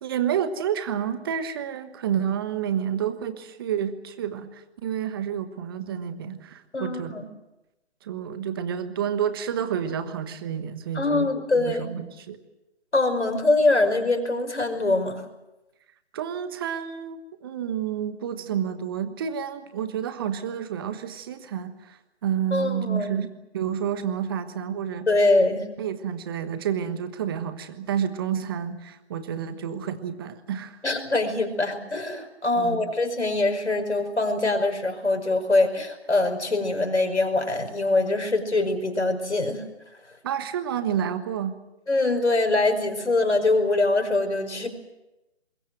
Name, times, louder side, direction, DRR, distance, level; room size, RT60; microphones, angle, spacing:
voice 1, 0.0-7.2 8.0-12.4 16.1-25.1 25.8-30.8 32.5-32.9 40.2-41.6, right 8 dB, 20° right, 10 dB, 1.3 m, -29 dB
voice 2, 6.7-7.2 10.9-11.9 12.9-15.2 22.5-23.1 25.1-25.7 30.8-39.6 41.9-44.7, left 2 dB, 80° left, 6 dB, 5.5 m, -23 dB
25.5 x 21.5 x 7.7 m, 0.96 s
figure-of-eight pair, 155°, 34 cm